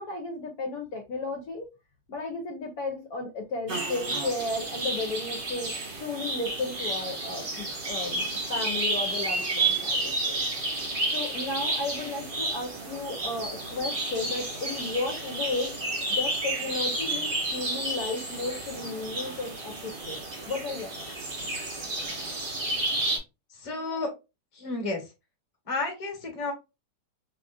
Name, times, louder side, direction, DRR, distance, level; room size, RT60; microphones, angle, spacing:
voice 1, 0.0-1.7 2.1-5.7 6.0-10.4 11.1-15.8 16.1-20.2 20.5-21.1, left 3 dB, 65° left, 3 dB, 1.0 m, -34 dB
sound 1, 3.7-23.2, right 2 dB, 40° right, 0.8 m, -31 dB
voice 2, 23.5-24.1 24.5-25.1 25.6-26.5, left 3 dB, 25° left, 2 dB, 0.9 m, -32 dB
4.1 x 2.4 x 2.4 m, 0.26 s
omnidirectional pair, 1.9 m